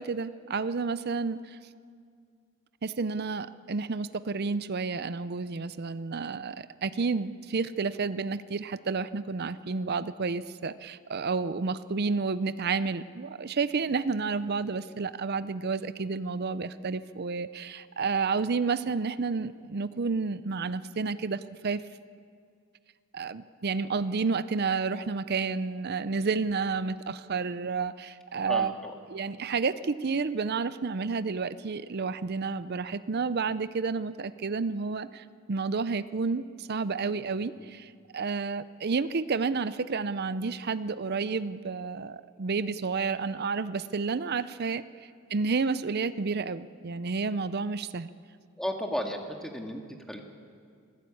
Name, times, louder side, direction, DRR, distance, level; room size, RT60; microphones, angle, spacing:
voice 1, 0.0-1.6 2.8-21.8 23.1-28.7 29.1-44.8 45.3-48.1, right 4 dB, 50° right, 14 dB, 0.6 m, -30 dB
voice 2, 28.5-28.9 37.6-37.7 48.6-49.8 50.1-50.2, equal, ahead, 2 dB, 1.9 m, -34 dB
26.5 x 16.0 x 8.6 m, 2.2 s
head